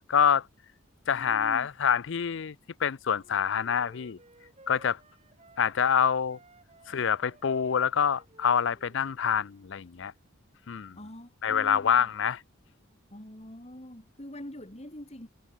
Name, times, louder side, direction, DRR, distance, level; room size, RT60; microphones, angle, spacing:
voice 1, 0.1-0.4 1.1-4.2 4.7-5.0 5.6-6.4 6.9-10.1 10.7-11.0 11.4-12.4, left 7 dB, 60° left, 0.5 m, -26 dB
voice 2, 1.1-1.7 11.0-12.1 13.1-15.3, left 1 dB, 30° left, 2.8 m, -44 dB
Wind instrument woodwind instrument, 3.0-6.0 6.3-9.6, right 2 dB, 30° right, 5.6 m, -57 dB
head